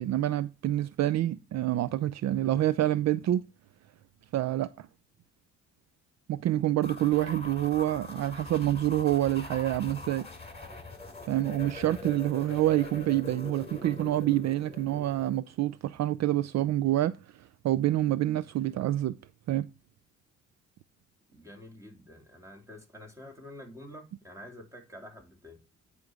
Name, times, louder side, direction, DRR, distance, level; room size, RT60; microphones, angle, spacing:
voice 1, 0.0-3.4 4.3-4.9 6.3-10.3 11.3-19.2 19.5-19.7, right 14 dB, 60° right, 0.5 m, -27 dB
sound 1, 6.8-15.4, left 3 dB, 20° left, 3.0 m, -43 dB
voice 2, 21.3-25.6, left 1 dB, 10° right, 3.2 m, -48 dB
9.5 x 5.3 x 4.9 m
cardioid pair, 90°, 30 cm